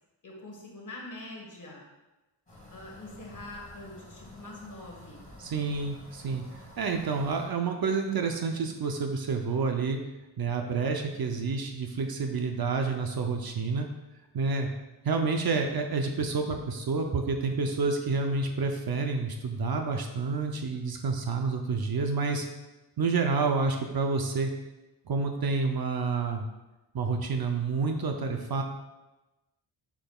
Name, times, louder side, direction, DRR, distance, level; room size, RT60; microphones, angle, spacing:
voice 1, 0.2-1.8 2.7-5.2, left 2 dB, 40° left, -1 dB, 1.5 m, -44 dB
sound 1, 2.5-7.5, left 1 dB, 15° left, 2.0 m, -50 dB
voice 2, 5.4-6.4 6.8-10.0 10.4-13.9 14.3-14.7 15.0-22.5 23.0-24.5 25.1-26.4 26.9-28.6, right 4 dB, 50° right, 3 dB, 0.6 m, -29 dB
6.5 x 6.1 x 2.3 m, 1.1 s
wide cardioid pair, 125°, 49 cm